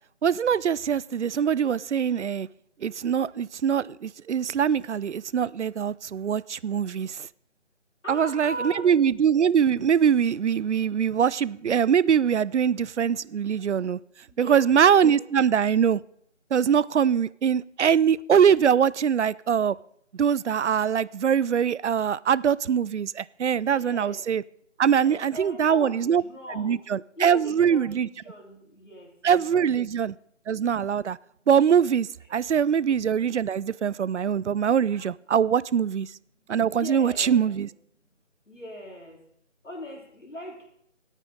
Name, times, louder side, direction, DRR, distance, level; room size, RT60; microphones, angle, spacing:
voice 1, 0.2-2.5 2.8-7.3 8.1-14.0 14.4-16.0 16.5-19.8 20.1-24.4 24.8-26.2 26.5-28.1 29.2-30.1 30.5-31.2 31.5-36.1 36.5-37.7, right 8 dB, 70° right, 22 dB, 0.5 m, -23 dB
voice 2, 8.0-8.8 14.4-15.1 23.5-24.2 24.8-26.8 27.2-29.1 29.5-29.7 32.3-32.4 36.7-37.6 38.5-39.2 39.6-40.6, left 1 dB, 90° left, 0 dB, 3.7 m, -39 dB
18.0 x 9.1 x 3.8 m, 0.68 s
figure-of-eight pair, 170°, 36 cm